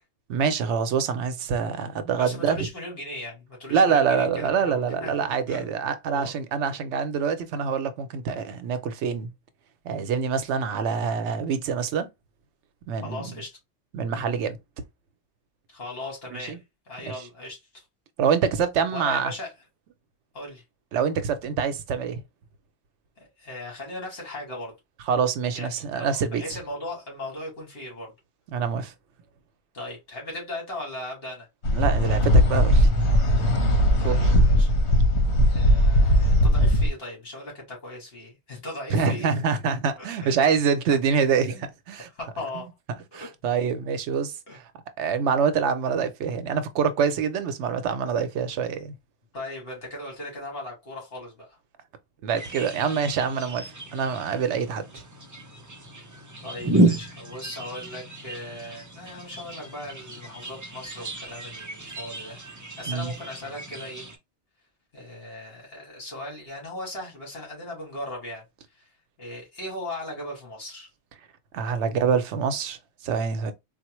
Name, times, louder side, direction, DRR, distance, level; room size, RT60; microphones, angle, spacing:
voice 1, 0.3-2.7 3.7-9.3 9.8-12.1 12.9-13.4 13.9-14.6 16.5-16.6 18.2-19.3 20.9-22.2 25.1-26.4 28.5-28.9 31.7-32.9 34.0-34.3 38.9-42.1 43.1-44.6 45.0-48.9 52.2-55.0 62.9-63.1 71.5-72.8 73.0-73.5, right 6 dB, 85° right, 0.9 m, -25 dB
voice 2, 2.2-5.7 6.1-6.3 13.0-13.6 15.7-17.8 18.9-19.5 20.3-20.6 23.2-24.7 25.5-28.1 29.7-31.5 34.0-34.7 35.5-39.3 40.0-40.4 41.5-41.7 42.1-42.7 43.1-43.3 44.5-44.6 49.3-51.6 56.4-62.4 62.8-64.1 64.9-68.4 68.8-68.9 69.2-70.9 71.6-71.8, left 1 dB, 60° left, 1.9 m, -38 dB
sound 1, 31.6-36.9, equal, 75° left, 1.2 m, -19 dB
sound 2, 52.3-64.2, right 1 dB, 25° right, 0.4 m, -31 dB
3.9 x 2.1 x 3.0 m
omnidirectional pair, 1.1 m